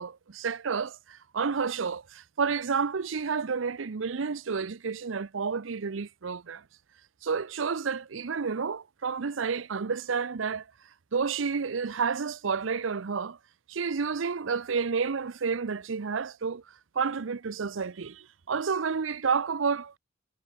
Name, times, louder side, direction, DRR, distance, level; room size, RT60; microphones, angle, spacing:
voice 1, 0.0-6.6 7.2-10.6 11.1-13.4 13.7-16.6 16.9-20.0, right 5 dB, 90° right, 0.6 m, -30 dB
head